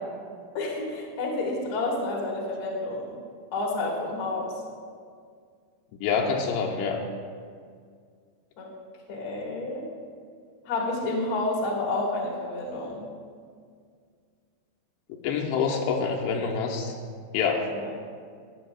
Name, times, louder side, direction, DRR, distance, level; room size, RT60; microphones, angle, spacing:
voice 1, 0.5-3.2 3.5-4.6 8.6-8.7 9.1-9.9 10.6-13.0 17.7-17.9, left 2 dB, 65° left, -3 dB, 1.3 m, -30 dB
voice 2, 6.0-7.0 15.2-16.9 17.3-17.7, left 5 dB, 85° left, -1 dB, 2.7 m, -26 dB
14.5 x 9.1 x 2.2 m, 2.1 s
omnidirectional pair, 5.0 m